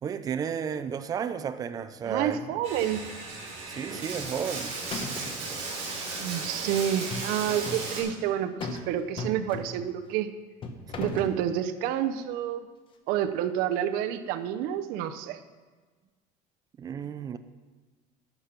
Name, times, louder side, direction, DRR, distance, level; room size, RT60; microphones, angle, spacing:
voice 1, 0.0-2.6 3.7-4.7 16.8-17.4, right 7 dB, 20° right, 11 dB, 0.5 m, -33 dB
voice 2, 2.1-3.0 6.2-10.3 11.0-12.7 13.1-15.4, right 10 dB, 60° right, 8 dB, 0.7 m, -29 dB
Bathtub (filling or washing), 2.6-8.0, right 3 dB, 40° right, 4.2 m, -35 dB
sound 1, 4.2-4.6 4.9-5.4 6.9-7.9 8.6-8.9 9.2-9.9 10.6-11.4, left 3 dB, 30° left, 1.0 m, -37 dB
12.0 x 6.8 x 5.8 m, 1.3 s
cardioid pair, 160°, 17 cm